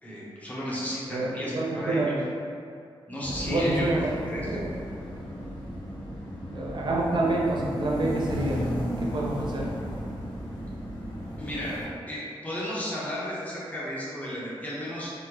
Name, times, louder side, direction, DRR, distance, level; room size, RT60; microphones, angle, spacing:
voice 1, 0.0-2.2 3.1-3.9 4.3-4.6 11.4-11.8 12.1-15.1, equal, 15° left, -7 dB, 0.7 m, -34 dB
voice 2, 1.1-2.2 3.4-4.1 4.5-4.6 6.5-8.7 9.0-9.7, right 2 dB, 50° right, -2 dB, 0.5 m, -27 dB
sound 1, 3.2-11.9, equal, 75° left, 1.1 m, -34 dB
3.6 x 2.1 x 2.9 m, 2.4 s
wide cardioid pair, 120°, 10 cm